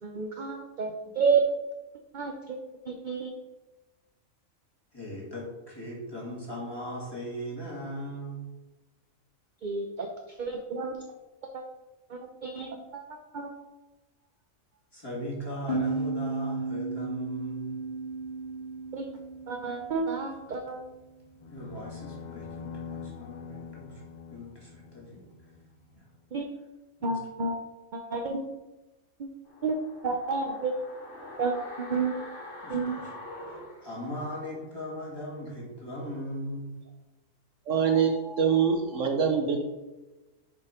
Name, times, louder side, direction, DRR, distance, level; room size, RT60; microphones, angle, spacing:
voice 1, 0.0-1.4 2.1-2.6 2.9-3.3 9.6-11.0 11.5-11.6 12.1-13.5 18.9-19.0 19.5-20.8 26.3-26.5 27.0-27.6 27.9-28.4 29.2-29.3 29.6-29.8 30.0-30.7 31.4-32.2 32.7-33.0, right 4 dB, 45° right, 3 dB, 0.7 m, -30 dB
voice 2, 4.9-8.4 14.9-17.8 21.5-24.0 24.3-25.2 25.9-26.0 27.0-27.1 32.6-32.9 33.8-36.7, equal, 15° left, -5 dB, 2.5 m, -38 dB
sound 1, 15.7-21.0, right 3 dB, 40° left, 2.3 m, -35 dB
sound 2, 21.4-25.7, left 7 dB, 85° left, 0.4 m, -44 dB
sound 3, 29.4-34.6 34.9-35.0, left 1 dB, 65° left, 2.9 m, -44 dB
voice 3, 37.7-39.7, right 6 dB, 65° right, 4 dB, 1.1 m, -24 dB
7.1 x 5.1 x 5.0 m, 1.1 s
omnidirectional pair, 1.4 m